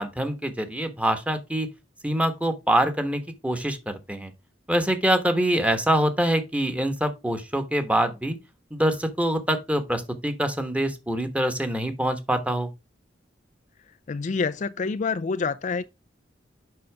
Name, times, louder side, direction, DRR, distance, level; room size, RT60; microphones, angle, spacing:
voice 1, 0.0-1.7 2.0-4.3 4.7-8.4 8.7-12.7, right 1 dB, 5° right, 1.2 m, -25 dB
voice 2, 14.1-15.8, left 4 dB, 45° left, 0.4 m, -27 dB
7.8 x 5.7 x 3.4 m
head